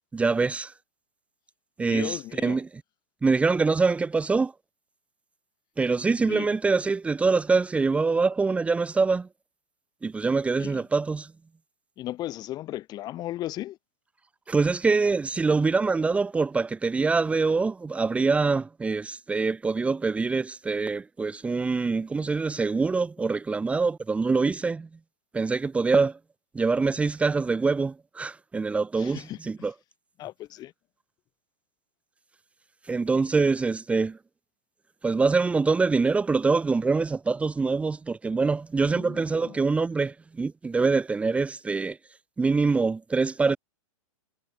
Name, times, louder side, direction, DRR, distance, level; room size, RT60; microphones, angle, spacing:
voice 1, 0.1-0.7 1.8-2.8 3.2-4.5 5.8-9.3 10.0-11.3 14.5-24.9 25.3-26.2 26.5-29.7 32.8-34.2 35.0-42.0 42.4-43.6, right 4 dB, 5° right, 2.0 m, -24 dB
voice 2, 1.9-2.6 6.3-6.5 10.6-10.8 12.0-13.8 29.0-29.4 30.2-30.7 38.8-39.5, left 14 dB, 25° left, 2.7 m, -36 dB
supercardioid pair, 165°, 17 cm